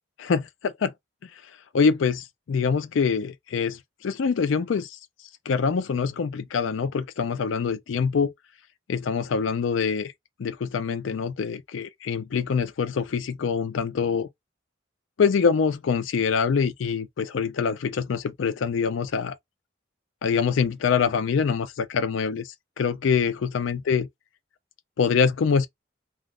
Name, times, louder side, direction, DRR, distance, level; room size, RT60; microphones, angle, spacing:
voice 1, 0.2-0.9 1.7-5.0 5.5-8.3 8.9-10.1 10.4-14.3 15.2-19.4 20.2-22.5 22.8-24.1 25.0-25.7, left 6 dB, 80° left, 0.4 m, -25 dB
2.4 x 2.3 x 3.4 m
head